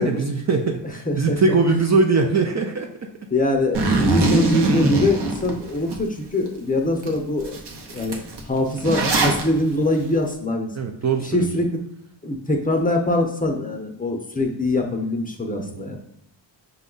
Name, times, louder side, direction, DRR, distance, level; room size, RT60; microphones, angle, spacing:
voice 1, 0.0-3.1 10.7-11.5 15.6-15.9, right 4 dB, 40° right, 3 dB, 0.5 m, -21 dB
voice 2, 1.1-1.4 3.3-7.6 7.9-10.9 11.2-11.8 12.2-16.0, left 2 dB, 20° left, 2 dB, 0.6 m, -23 dB
Zipper (clothing), 3.7-6.0 6.5-6.6 7.0-7.1 7.4-9.4, right 2 dB, 60° right, 0.9 m, -22 dB
5.2 x 2.3 x 3.8 m, 0.73 s
cardioid pair, 80°, 46 cm